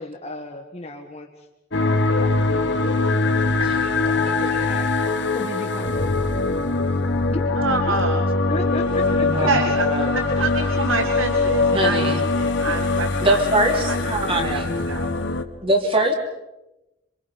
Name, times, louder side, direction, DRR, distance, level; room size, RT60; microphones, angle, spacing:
voice 1, 0.0-4.9 5.3-6.0 7.3-8.0 8.5-9.7 12.7-13.0, left 2 dB, 30° left, -2 dB, 1.8 m, -35 dB
sound 1, 1.7-15.4, left 3 dB, 60° left, 1.5 m, -22 dB
voice 2, 3.6-3.9 9.1-10.1 11.7-12.2 13.2-14.8 15.6-16.1, right 1 dB, 30° right, 3 dB, 3.1 m, -23 dB
voice 3, 7.6-8.2 9.5-9.8 10.1-15.3, right 3 dB, 75° right, 5 dB, 2.0 m, -27 dB
26.5 x 26.0 x 5.4 m, 0.94 s
head